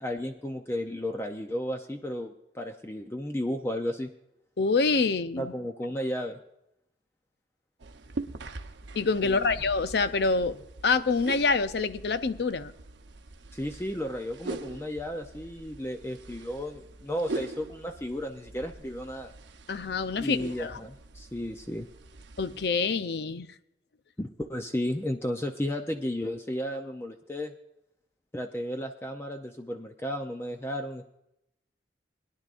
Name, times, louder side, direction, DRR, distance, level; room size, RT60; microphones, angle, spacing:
voice 1, 0.0-4.1 5.4-6.4 9.2-9.5 13.5-19.3 20.2-21.9 24.2-27.5 28.3-31.1, left 1 dB, 15° left, 5 dB, 0.6 m, -33 dB
voice 2, 4.6-5.5 9.0-12.7 19.7-20.8 22.4-23.5, left 4 dB, 65° left, 12 dB, 0.6 m, -26 dB
sound 1, 7.8-22.7, right 2 dB, 90° right, 0.9 m, -43 dB
21.0 x 10.5 x 2.5 m, 0.83 s
head